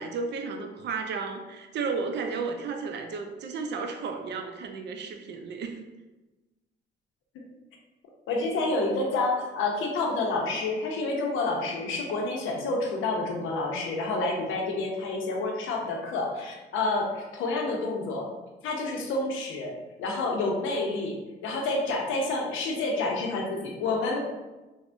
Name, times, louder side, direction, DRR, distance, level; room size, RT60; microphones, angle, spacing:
voice 1, 0.0-5.8, right 4 dB, 60° right, 5 dB, 0.4 m, -33 dB
voice 2, 8.3-18.3 18.6-21.2 21.4-24.2, left 2 dB, 85° left, 0 dB, 0.6 m, -29 dB
3.4 x 2.1 x 2.5 m, 1.1 s
cardioid pair, 90°, 20 cm